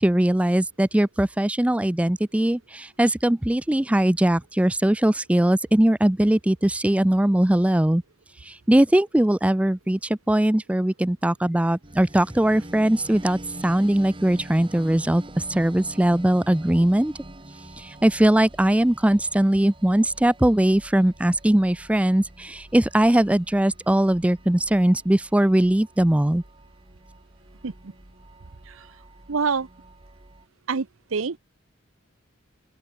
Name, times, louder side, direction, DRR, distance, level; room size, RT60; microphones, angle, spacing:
voice 1, 0.0-8.0 8.4-17.1 17.8-26.4, right 1 dB, 5° right, 0.3 m, -20 dB
sound 1, 11.8-30.5, right 1 dB, 25° right, 1.5 m, -45 dB
voice 2, 29.3-29.7 30.7-31.4, right 5 dB, 75° right, 0.7 m, -27 dB
open air
head